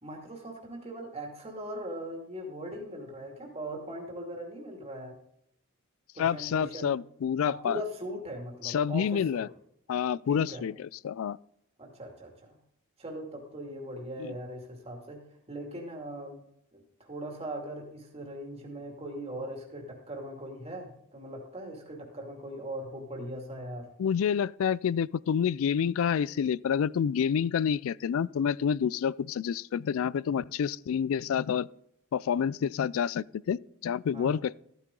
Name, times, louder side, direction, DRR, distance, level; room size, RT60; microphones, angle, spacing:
voice 1, 0.0-5.2 6.1-6.9 7.4-9.4 10.3-10.6 11.8-12.6 13.0-15.2 15.5-16.4 16.7-23.9 34.1-34.4, right 1 dB, 25° right, 2.5 m, -40 dB
voice 2, 6.2-7.8 8.6-9.5 9.9-11.4 14.2-14.3 24.0-31.7 32.1-34.5, left 7 dB, 65° left, 0.3 m, -28 dB
14.0 x 9.6 x 3.8 m
head